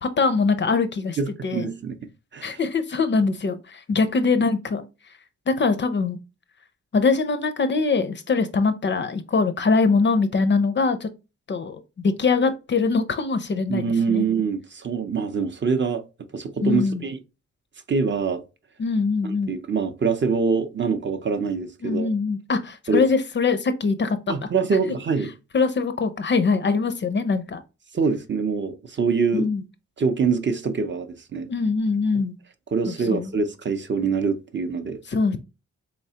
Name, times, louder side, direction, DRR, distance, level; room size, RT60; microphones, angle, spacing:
voice 1, 0.0-1.7 2.4-4.8 5.5-6.2 6.9-11.1 11.5-14.2 16.6-17.0 18.8-19.6 21.8-24.4 25.5-27.6 29.3-29.6 31.5-32.4 32.9-33.3 35.1-35.4, left 4 dB, 40° left, 0.4 m, -23 dB
voice 2, 1.2-1.9 2.3-2.6 13.7-16.0 16.3-17.2 17.9-18.4 19.2-22.1 22.9-23.0 24.3-25.3 27.9-29.5 30.0-31.5 32.7-35.0, right 5 dB, 40° right, 0.5 m, -24 dB
4.0 x 3.2 x 2.7 m
wide cardioid pair, 145°, 30 cm